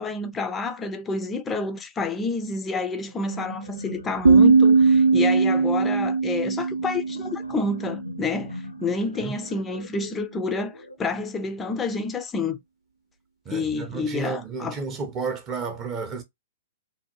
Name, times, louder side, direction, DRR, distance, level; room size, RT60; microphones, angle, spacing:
voice 1, 0.0-12.6 13.5-14.8, left 3 dB, 15° left, 0.4 m, -29 dB
sound 1, 3.1-11.0, left 2 dB, 85° left, 0.7 m, -41 dB
sound 2, 4.2-8.1, right 4 dB, 75° right, 0.5 m, -19 dB
voice 2, 13.5-16.2, right 5 dB, 25° right, 0.6 m, -32 dB
2.7 x 2.2 x 3.0 m
figure-of-eight pair, 110°, 0 cm